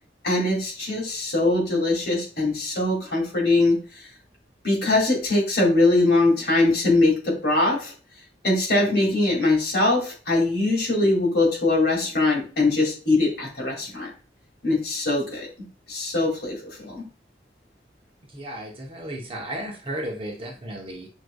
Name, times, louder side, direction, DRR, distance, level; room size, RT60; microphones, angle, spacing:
voice 1, 0.2-4.0 4.6-7.9 8.4-14.1 14.6-17.0, left 2 dB, 60° left, -3 dB, 2.3 m, -22 dB
voice 2, 18.2-21.1, right 1 dB, 30° right, 1 dB, 0.9 m, -34 dB
6.2 x 3.2 x 2.3 m, 0.37 s
head